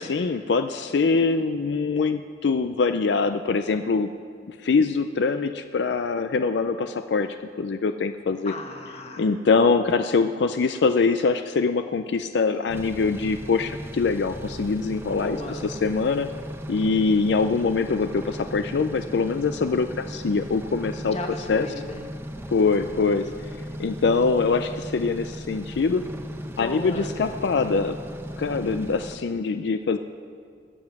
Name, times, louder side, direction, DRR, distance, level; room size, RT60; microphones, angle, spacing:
voice 1, 0.0-4.1 4.5-8.5 9.2-16.3 16.7-21.2 21.5-21.7 22.5-23.5 23.8-26.0 26.6-28.0 28.4-30.0, left 4 dB, 75° left, 9 dB, 0.4 m, -23 dB
voice 2, 8.4-9.3 15.2-15.6 21.1-22.0 26.6-27.1, left 1 dB, 35° left, 3 dB, 1.3 m, -35 dB
sound 1, 12.7-29.2, equal, 15° right, 0.7 m, -37 dB
20.5 x 7.8 x 5.9 m, 2.2 s
head